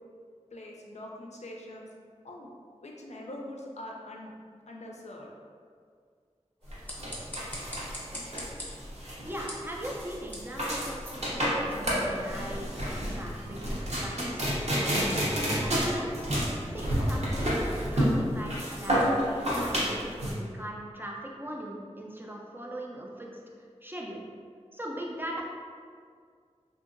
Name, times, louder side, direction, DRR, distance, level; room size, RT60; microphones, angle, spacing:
voice 1, 0.5-1.9 2.2-2.5 2.8-4.3 4.7-5.3, left 1 dB, 70° left, -1 dB, 0.4 m, -43 dB
sound 1, 6.6-11.9, left 1 dB, 15° left, 0.7 m, -44 dB
sound 2, 6.7-20.3, equal, 65° right, 0.7 m, -30 dB
voice 2, 9.2-13.6 13.9-14.5 14.9-24.2 24.7-25.4, right 1 dB, 15° right, -2 dB, 0.4 m, -40 dB
2.8 x 2.6 x 2.5 m, 2.1 s
wide cardioid pair, 60°, 12 cm